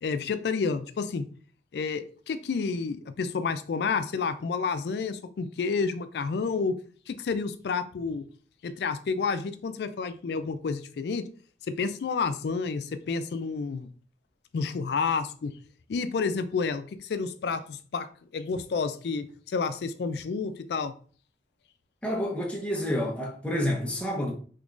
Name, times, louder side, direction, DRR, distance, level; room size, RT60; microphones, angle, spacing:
voice 1, 0.0-1.3 1.7-6.8 7.1-8.3 8.6-11.2 11.7-13.9 14.5-15.5 15.9-18.1 18.3-20.9, left 5 dB, 70° left, 0.3 m, -30 dB
voice 2, 22.0-24.3, equal, 5° left, 0.6 m, -29 dB
3.7 x 2.9 x 2.4 m
head